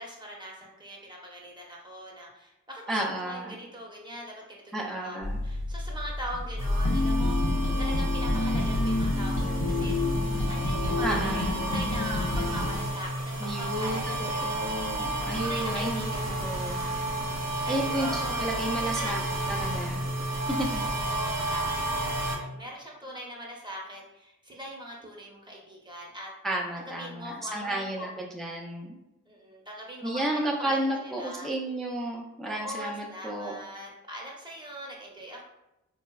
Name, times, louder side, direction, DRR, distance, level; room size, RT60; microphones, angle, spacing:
voice 1, 0.0-7.4 7.8-17.0 17.6-19.2 20.8-26.3 26.7-28.1 29.3-31.5 32.5-35.4, equal, 15° right, -2 dB, 0.8 m, -41 dB
voice 2, 2.9-3.5 4.7-5.4 11.0-11.6 13.4-16.1 16.4-16.8 17.7-19.2 19.5-20.0 20.5-20.8 26.4-29.0 30.0-33.5, right 1 dB, ahead, -1 dB, 0.4 m, -32 dB
sound 1, 5.2-12.8, left 2 dB, 70° left, 0.7 m, -28 dB
sound 2, 6.6-22.4, right 1 dB, 55° right, 0.7 m, -32 dB
3.1 x 2.0 x 2.3 m, 0.90 s
cardioid pair, 40°, 32 cm